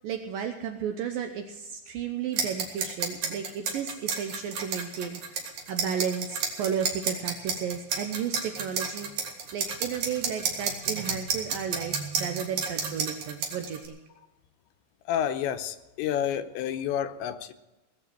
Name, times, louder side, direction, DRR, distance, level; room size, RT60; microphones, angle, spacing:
voice 1, 0.0-9.1 9.5-14.0, right 8 dB, 75° right, 2.1 m, -33 dB
sound 1, 2.3-13.9, right 5 dB, 60° right, 3.4 m, -31 dB
voice 2, 15.1-17.5, left 10 dB, 85° left, 3.1 m, -29 dB
19.0 x 7.5 x 7.6 m
omnidirectional pair, 5.1 m